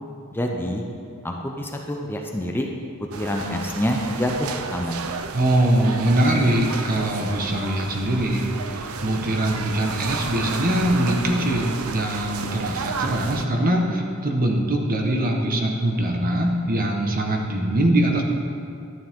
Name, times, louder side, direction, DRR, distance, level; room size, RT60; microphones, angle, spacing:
voice 1, 0.3-0.8 1.2-2.7 3.1-5.0, equal, 10° left, 1 dB, 0.6 m, -26 dB
sound 1, 3.1-13.5, right 5 dB, 80° right, 0.6 m, -32 dB
voice 2, 5.3-18.2, right 1 dB, 45° right, 2 dB, 1.2 m, -22 dB
11.5 x 9.8 x 3.7 m, 2.5 s
head